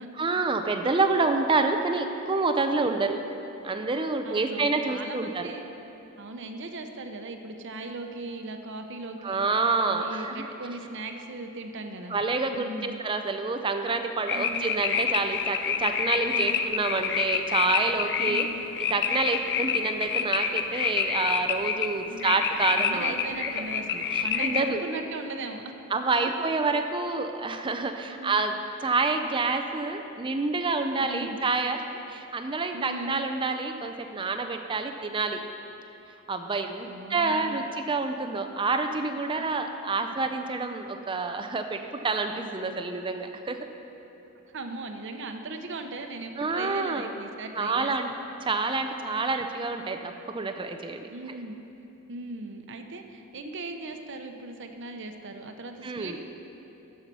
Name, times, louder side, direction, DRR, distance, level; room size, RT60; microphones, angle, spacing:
voice 1, 0.2-3.2 3.6-5.5 9.2-10.5 12.1-18.5 18.9-23.1 24.1-24.8 25.9-28.6 28.8-35.4 36.3-43.7 46.4-47.1 47.5-48.1 48.4-51.1 55.8-56.2, right 3 dB, 25° right, 6 dB, 0.5 m, -28 dB
voice 2, 2.8-3.1 4.2-5.6 6.2-9.4 9.9-12.2 12.5-13.0 14.3-14.7 16.3-16.7 18.3-18.7 22.1-22.3 22.7-25.7 28.1-28.4 31.0-31.4 32.7-33.2 36.9-37.7 39.4-39.7 44.5-47.9 51.1-51.6 52.1-56.2, right 2 dB, 60° right, 5 dB, 0.8 m, -38 dB
sound 1, 14.3-24.6, left 7 dB, 55° left, 0.6 m, -28 dB
14.5 x 5.6 x 6.1 m, 3.0 s
head